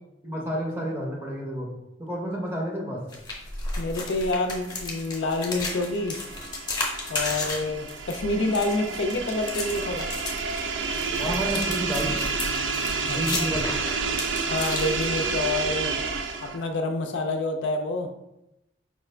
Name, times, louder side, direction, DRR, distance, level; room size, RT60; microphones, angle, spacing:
voice 1, 0.2-1.7 2.0-3.0 11.2-12.2 13.0-13.8, equal, 15° right, -2 dB, 0.6 m, -30 dB
sound 1, 3.1-15.5, left 2 dB, 20° left, 0.7 m, -34 dB
voice 2, 3.8-6.2 7.1-10.1 13.1-13.5 14.5-16.0 16.4-18.1, left 2 dB, 75° left, 5 dB, 0.4 m, -28 dB
sound 2, 4.8-16.7, right 4 dB, 85° right, 0.4 m, -30 dB
4.9 x 2.4 x 3.2 m, 0.90 s
head